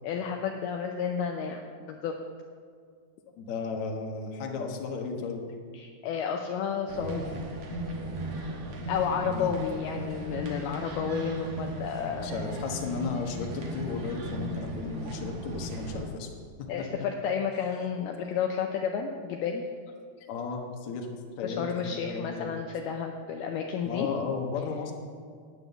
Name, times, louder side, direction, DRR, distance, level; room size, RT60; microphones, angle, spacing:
voice 1, 0.0-1.6 1.9-2.2 5.7-7.5 8.9-12.3 16.7-19.7 21.4-24.1, left 7 dB, 80° left, 3 dB, 2.3 m, -31 dB
voice 2, 3.4-5.4 9.3-9.6 12.0-16.3 20.2-21.1 21.4-22.5 23.8-24.9, left 4 dB, 65° left, 1 dB, 1.9 m, -34 dB
sound 1, 6.9-16.1, equal, 75° right, 1.4 m, -36 dB
9.7 x 9.3 x 6.9 m, 2.1 s
omnidirectional pair, 5.0 m